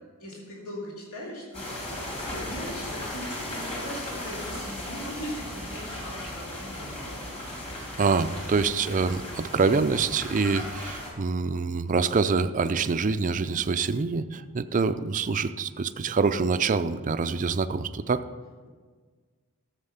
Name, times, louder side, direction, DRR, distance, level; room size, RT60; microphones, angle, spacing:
voice 1, 0.2-7.2, equal, 70° left, -4 dB, 2.8 m, -40 dB
sound 1, 1.5-11.1, left 1 dB, 30° left, 3.0 m, -36 dB
voice 2, 8.0-18.2, right 4 dB, 35° right, 11 dB, 0.4 m, -25 dB
13.5 x 7.5 x 5.6 m, 1.5 s
head